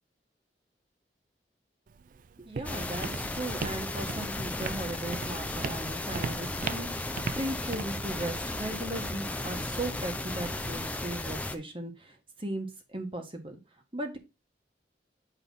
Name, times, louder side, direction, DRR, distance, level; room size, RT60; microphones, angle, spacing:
Walk footsteps, 1.9-9.8, right 5 dB, 50° right, 0.3 m, -40 dB
voice 1, 2.4-13.6 13.9-14.2, right 1 dB, 30° right, 5 dB, 1.5 m, -37 dB
sound 1, 2.6-11.6, left 2 dB, 10° left, 0.6 m, -35 dB
8.5 x 3.4 x 5.5 m, 0.27 s
head